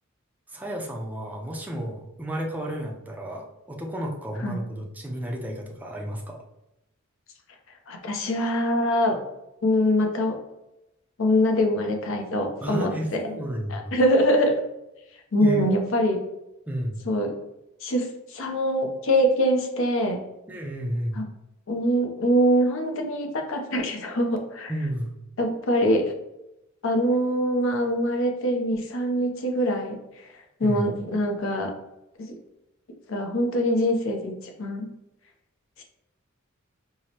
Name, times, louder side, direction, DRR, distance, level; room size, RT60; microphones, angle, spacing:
voice 1, 0.5-6.4 12.6-13.9 15.4-15.7 16.7-17.0 20.5-21.2 24.7-25.1 30.6-30.9, equal, 10° right, -1 dB, 0.4 m, -32 dB
voice 2, 7.9-9.2 9.6-10.4 11.2-13.2 13.7-14.5 15.3-16.2 17.1-17.3 17.8-20.2 21.2-21.3 21.7-24.7 25.4-26.1 26.8-30.3 30.6-31.7 32.2-32.3 33.1-34.3 34.6-34.9, equal, 65° left, 3 dB, 0.6 m, -23 dB
4.7 x 2.0 x 2.8 m, 0.89 s
head